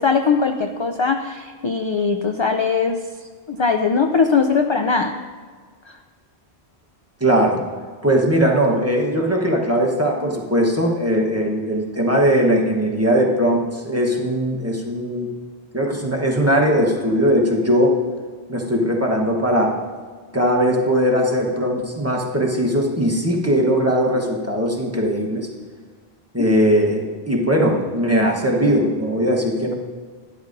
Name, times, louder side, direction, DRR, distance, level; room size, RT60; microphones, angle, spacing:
voice 1, 0.0-3.0 3.5-5.1 5.9-6.0 10.2-10.3, left 5 dB, 50° left, 5 dB, 0.3 m, -20 dB
voice 2, 7.2-7.6 8.0-15.3 15.7-18.0 18.5-19.7 20.3-25.5 26.3-29.7, equal, 15° right, -1 dB, 1.1 m, -19 dB
12.0 x 11.0 x 2.6 m, 1.5 s
omnidirectional pair, 1.1 m